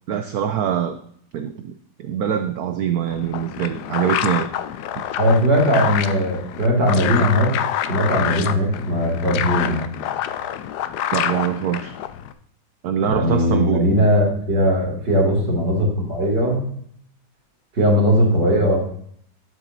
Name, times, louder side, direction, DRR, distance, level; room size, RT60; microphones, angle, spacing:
voice 1, 0.1-1.0 1.3-4.5 5.0-5.1 11.1-12.0 12.8-13.9, right 9 dB, 85° right, 9 dB, 0.8 m, -24 dB
sound 1, 3.1-12.3, left 11 dB, 75° left, 0.9 m, -27 dB
voice 2, 5.2-7.5 7.9-9.8 13.0-16.6 17.8-18.8, equal, 55° right, -2 dB, 3.2 m, -19 dB
11.0 x 7.2 x 2.7 m, 0.65 s
omnidirectional pair, 2.2 m